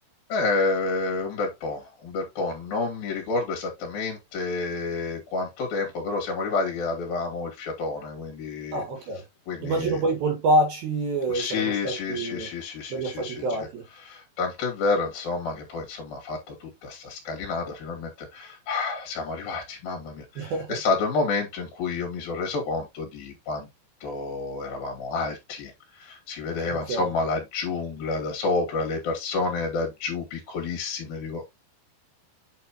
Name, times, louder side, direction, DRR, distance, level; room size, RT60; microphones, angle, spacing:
voice 1, 0.3-8.8 9.5-10.0 11.3-13.5 14.0-23.7 24.0-31.5, left 3 dB, 60° left, 3.8 m, -29 dB
voice 2, 8.7-9.2 9.6-12.5 12.9-13.8 20.4-20.8 26.6-27.1, right 1 dB, 60° right, 3.4 m, -26 dB
8.6 x 5.4 x 3.0 m
omnidirectional pair, 5.1 m